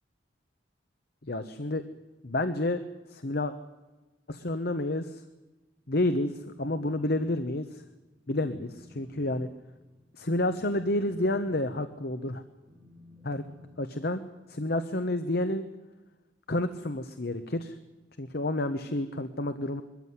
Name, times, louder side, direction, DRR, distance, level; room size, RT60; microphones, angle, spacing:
voice 1, 1.3-1.8 2.2-2.8 3.1-3.5 4.3-5.2 5.9-7.8 8.3-9.5 10.2-12.4 13.2-13.4 13.8-14.2 14.5-15.6 16.5-17.7 18.2-19.8, left 1 dB, 55° left, 9 dB, 1.1 m, -29 dB
Telephone, 7.8-8.0 8.3-14.4, left 1 dB, ahead, 7.0 m, -54 dB
22.0 x 14.5 x 9.6 m, 1.1 s
head